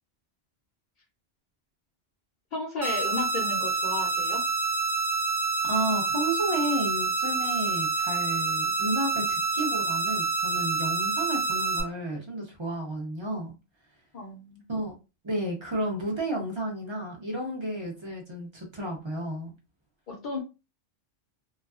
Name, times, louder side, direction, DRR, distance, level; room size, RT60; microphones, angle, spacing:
voice 1, 2.5-4.4 14.1-14.6 20.1-20.4, left 3 dB, 50° left, -1 dB, 0.6 m, -33 dB
sound 1, 2.8-11.8, right 4 dB, 65° right, 0.3 m, -27 dB
voice 2, 5.6-13.5 14.7-15.0 15.2-19.5, right 1 dB, 30° right, 0 dB, 0.7 m, -32 dB
2.5 x 2.4 x 2.3 m, 0.28 s
omnidirectional pair, 1.3 m